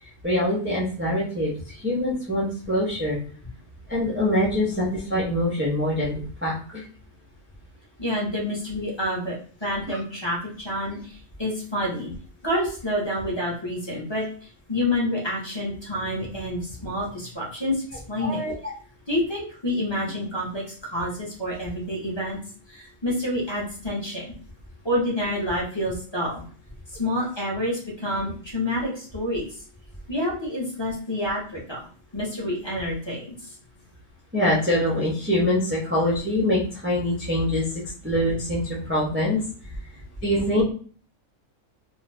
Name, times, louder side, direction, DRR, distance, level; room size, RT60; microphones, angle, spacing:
voice 1, 0.0-3.2 3.9-6.8 9.9-10.0 18.2-18.7 34.3-39.4 40.2-40.6, left 1 dB, 20° right, -7 dB, 0.3 m, -24 dB
voice 2, 8.0-12.1 12.4-18.4 19.1-22.4 22.7-24.3 24.8-26.4 27.0-29.5 30.1-31.8 32.1-33.5, left 1 dB, 25° left, -6 dB, 0.7 m, -28 dB
2.5 x 2.2 x 3.3 m, 0.43 s
omnidirectional pair, 1.4 m